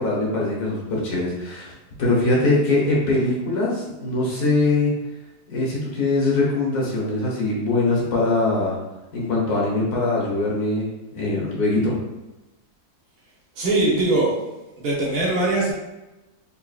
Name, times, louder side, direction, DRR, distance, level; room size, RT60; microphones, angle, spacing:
voice 1, 0.0-1.7 2.0-4.9 5.5-8.7 9.1-12.0, left 2 dB, 65° left, -4 dB, 1.6 m, -22 dB
voice 2, 13.6-14.3 14.8-15.7, right 2 dB, 65° right, -4 dB, 1.6 m, -21 dB
4.1 x 3.8 x 2.3 m, 1.0 s
omnidirectional pair, 1.8 m